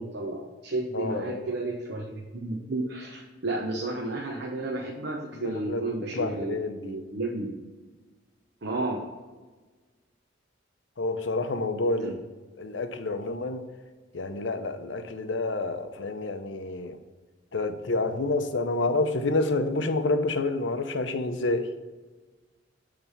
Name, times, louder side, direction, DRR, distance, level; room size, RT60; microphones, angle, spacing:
voice 1, 0.0-7.5 8.6-9.0 12.0-12.1, right 2 dB, 65° right, -1 dB, 1.0 m, -32 dB
voice 2, 0.9-1.5 5.4-6.9 11.0-12.2 12.6-13.6 14.1-17.0 17.5-21.7, left 2 dB, 80° left, 8 dB, 0.7 m, -28 dB
8.6 x 3.4 x 5.6 m, 1.3 s
head